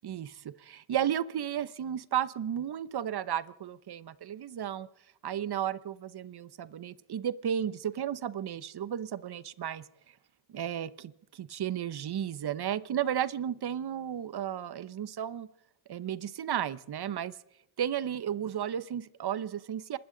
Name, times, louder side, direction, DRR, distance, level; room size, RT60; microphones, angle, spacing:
voice 1, 0.0-4.9 5.2-9.8 10.5-15.5 15.9-17.3 17.8-20.0, right 10 dB, 50° right, 17 dB, 0.9 m, -33 dB
27.5 x 13.0 x 3.9 m, 0.82 s
cardioid pair, 70°, 50 cm